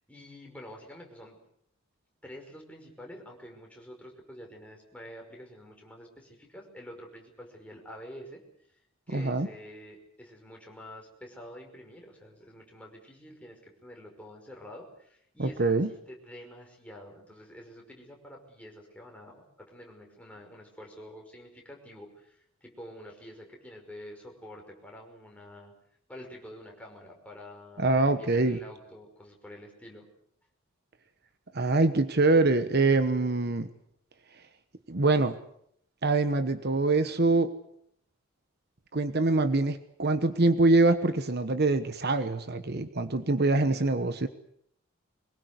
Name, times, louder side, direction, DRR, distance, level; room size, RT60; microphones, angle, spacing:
voice 1, 0.1-1.4 2.2-8.4 9.1-25.7 26.1-30.1, equal, 5° left, 0 dB, 5.4 m, -48 dB
voice 2, 9.1-9.5 15.4-15.9 27.8-28.6 31.5-33.7 34.9-35.3 36.0-37.5 38.9-44.3, right 2 dB, 50° right, 10 dB, 1.2 m, -24 dB
24.0 x 21.0 x 8.2 m, 0.69 s
head